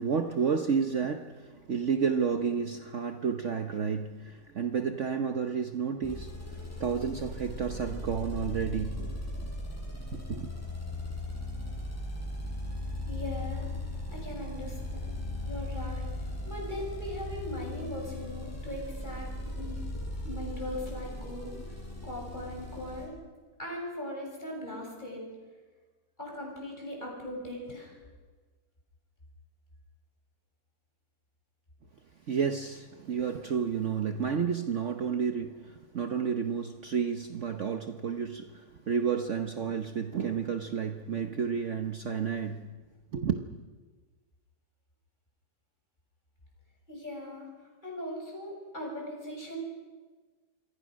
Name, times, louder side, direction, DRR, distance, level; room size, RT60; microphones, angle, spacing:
voice 1, 0.0-9.5 10.1-10.5 32.3-42.7 43.1-43.6, right 6 dB, 50° right, 7 dB, 1.2 m, -31 dB
sound 1, 6.0-23.1, left 1 dB, 10° left, 6.3 m, -38 dB
voice 2, 13.1-13.7 14.1-15.2 15.4-19.8 20.2-21.6 22.0-23.1 23.6-25.2 26.2-28.0 46.9-47.5 47.8-49.6, left 1 dB, 25° left, -1 dB, 7.3 m, -39 dB
27.5 x 23.0 x 6.3 m, 1.4 s
omnidirectional pair, 1.7 m